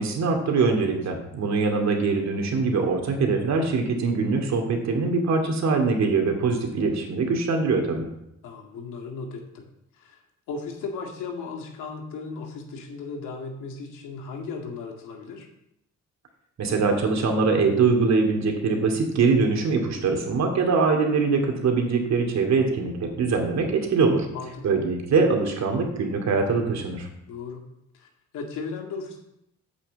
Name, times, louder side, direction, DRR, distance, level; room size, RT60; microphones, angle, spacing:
voice 1, 0.0-8.1 16.6-24.3 24.6-27.1, right 4 dB, 65° right, 3 dB, 2.5 m, -23 dB
voice 2, 0.8-1.2 8.4-9.7 9.9-10.2 10.5-15.5 24.1-24.8 27.3-27.7 27.9-28.1 28.3-29.2, left 4 dB, 90° left, 2 dB, 2.3 m, -36 dB
8.3 x 6.4 x 7.6 m, 0.80 s
cardioid pair, 90°, 30 cm